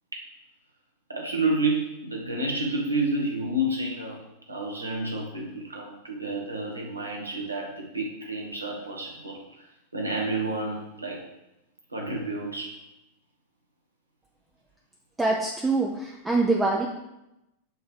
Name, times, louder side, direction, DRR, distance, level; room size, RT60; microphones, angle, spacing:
voice 1, 1.1-4.2 4.5-9.4 9.9-11.2 11.9-12.8, right 2 dB, 80° right, 0 dB, 1.4 m, -30 dB
voice 2, 15.2-16.9, right 3 dB, 10° right, -1 dB, 0.6 m, -24 dB
6.3 x 3.3 x 5.0 m, 0.89 s
figure-of-eight pair, 90°, 0 cm